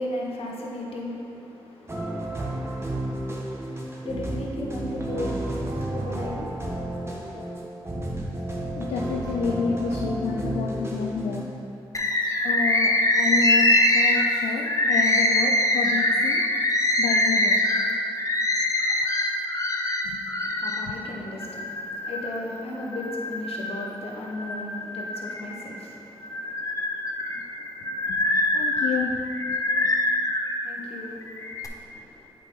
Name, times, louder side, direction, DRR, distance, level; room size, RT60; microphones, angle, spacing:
voice 1, 0.0-7.6 20.3-28.1 30.6-32.3, left 1 dB, 70° left, -2 dB, 1.2 m, -37 dB
sound 1, 1.9-11.4, right 1 dB, 25° right, 1.6 m, -31 dB
voice 2, 8.7-11.4 12.4-16.4 17.0-17.6 20.0-20.2 20.9-21.0 27.6-28.2 28.5-29.2 29.5-29.9, left 5 dB, 85° left, 0 dB, 0.4 m, -30 dB
Bird, 11.9-20.9 21.4-22.4 22.9-23.9 24.4-25.7 26.2-30.5 31.2-31.7, left 1 dB, 30° left, 0.8 m, -24 dB
8.1 x 5.3 x 3.8 m, 2.9 s
supercardioid pair, 45°, 10 cm